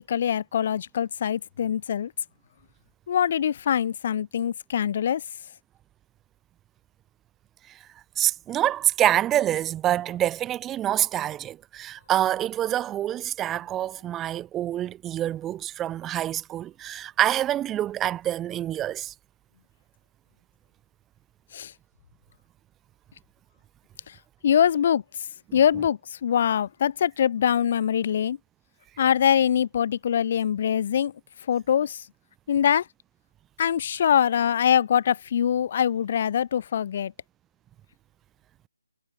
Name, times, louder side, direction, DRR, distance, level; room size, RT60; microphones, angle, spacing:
voice 1, 0.1-2.1 3.1-5.2 21.5-21.7 24.4-25.0 25.5-28.4 29.0-31.1 31.5-32.0 32.5-32.8 33.6-37.1, left 9 dB, 35° left, 4.3 m, -23 dB
voice 2, 8.2-19.1 25.5-25.6, right 12 dB, 10° right, 7.6 m, -26 dB
figure-of-eight pair, 155°, 0 cm